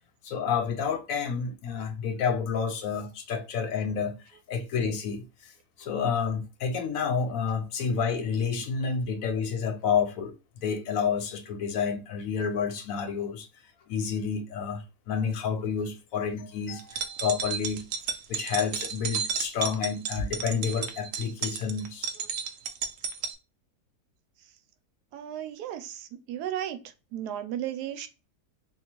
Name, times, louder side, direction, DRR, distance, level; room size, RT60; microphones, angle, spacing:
voice 1, 0.2-4.2 4.5-5.5 5.8-13.5 13.9-17.8 18.3-22.1, left 6 dB, 70° left, 0.9 m, -29 dB
sound 1, 16.8-23.3, right 7 dB, 70° right, 0.9 m, -33 dB
voice 2, 25.1-26.8 27.1-28.1, right 11 dB, 90° right, 1.2 m, -34 dB
3.6 x 2.4 x 2.9 m
omnidirectional pair, 1.7 m